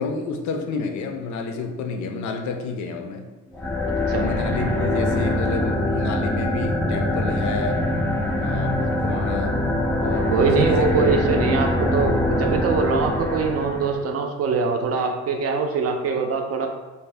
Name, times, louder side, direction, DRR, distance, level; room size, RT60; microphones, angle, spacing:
voice 1, 0.0-3.2 4.1-7.8 8.4-9.6 10.0-10.9, left 4 dB, 70° left, 4 dB, 0.5 m, -29 dB
sound 1, 3.5-14.0, left 1 dB, 5° left, 0.4 m, -23 dB
voice 2, 10.3-16.7, right 4 dB, 55° right, 4 dB, 0.5 m, -23 dB
2.6 x 2.1 x 3.3 m, 1.2 s
cardioid pair, 90°, 30 cm